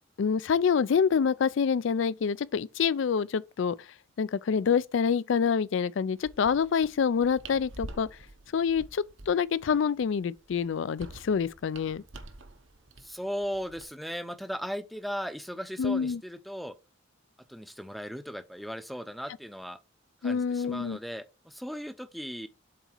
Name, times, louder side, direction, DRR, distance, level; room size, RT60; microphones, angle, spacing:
voice 1, 0.2-3.8 4.2-8.1 8.5-12.0 15.8-16.2 20.2-21.0, left 6 dB, 70° left, 0.4 m, -26 dB
sound 1, 6.2-13.8, right 2 dB, 75° right, 1.0 m, -48 dB
voice 2, 13.0-16.7 17.5-19.8 20.2-22.5, equal, ahead, 0.6 m, -37 dB
7.5 x 4.1 x 4.5 m
head